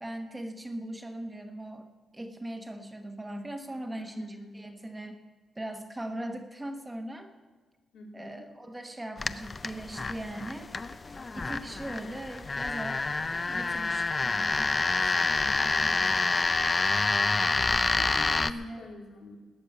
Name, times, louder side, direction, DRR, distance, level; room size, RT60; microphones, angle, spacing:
voice 1, 0.0-1.9 2.1-5.2 5.6-7.3 8.1-10.7 11.3-13.2 13.5-15.2 18.4-18.8, right 1 dB, 10° right, 6 dB, 1.0 m, -39 dB
voice 2, 4.0-4.8 7.9-8.5 15.2-16.1 18.0-19.4, left 2 dB, 85° left, 0 dB, 3.0 m, -47 dB
sound 1, 9.2-18.5, left 3 dB, 20° left, 0.4 m, -28 dB
19.5 x 7.0 x 9.4 m, 1.4 s
wide cardioid pair, 180°, 0 cm